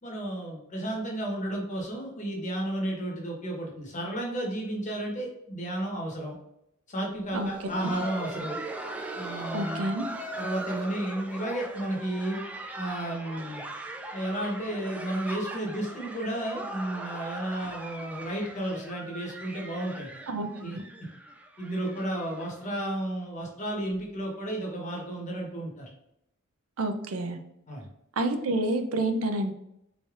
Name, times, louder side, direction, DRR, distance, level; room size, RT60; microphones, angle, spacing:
voice 1, 0.0-6.4 6.9-8.6 9.2-9.9 10.4-12.4 12.8-13.6 14.1-20.2 20.5-20.8 21.6-25.9 27.7-27.8, right 1 dB, 35° left, -1 dB, 1.0 m, -33 dB
Laughter, 7.3-22.9 23.2-23.3 23.9-24.0 24.6-24.8 25.8-25.9, right 2 dB, 5° right, 0.3 m, -40 dB
voice 2, 9.5-10.0 20.3-20.5 20.7-20.8 26.8-27.4 28.2-29.5, right 2 dB, 80° right, 7 dB, 0.5 m, -28 dB
3.9 x 3.3 x 2.4 m, 0.78 s
head